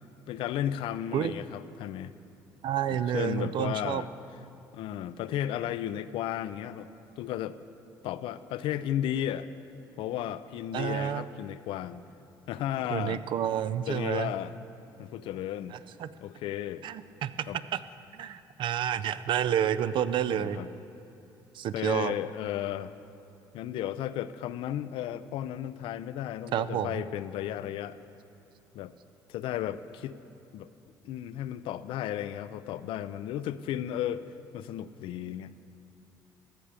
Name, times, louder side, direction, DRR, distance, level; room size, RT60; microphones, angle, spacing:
voice 1, 0.3-2.1 2.9-4.1 4.7-6.9 7.2-7.6 8.0-9.5 10.0-12.0 12.5-13.2 13.9-14.5 15.0-15.8 16.2-16.8 17.5-17.6 20.3-20.7 21.7-22.9 23.5-28.0 28.7-28.9 29.3-30.2 30.5-30.7 31.0-34.2 34.5-35.5, left 11 dB, 70° left, 14 dB, 0.4 m, -34 dB
voice 2, 2.6-4.0 10.7-11.2 12.9-14.3 15.7-16.1 16.8-17.5 17.7-17.8 18.1-20.6 21.5-22.1 26.5-27.0, right 10 dB, 60° right, 14 dB, 0.4 m, -29 dB
14.0 x 6.8 x 5.0 m, 2.7 s
supercardioid pair, 70°, 9 cm